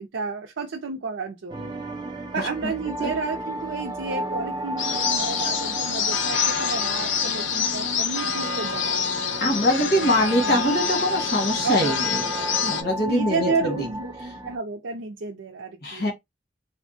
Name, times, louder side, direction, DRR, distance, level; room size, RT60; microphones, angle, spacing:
voice 1, 0.0-1.8 2.3-9.1 10.4-10.8 11.6-12.4 13.0-14.1 14.4-16.1, right 4 dB, 90° right, 0.6 m, -31 dB
sound 1, 1.5-14.6, right 1 dB, 20° right, 0.5 m, -34 dB
voice 2, 2.4-2.7 3.0-3.1 9.4-12.2 12.6-13.9 15.8-16.1, left 1 dB, 55° left, 1.4 m, -23 dB
sound 2, 4.8-12.8, left 6 dB, 80° left, 0.6 m, -26 dB
3.5 x 2.2 x 2.6 m
head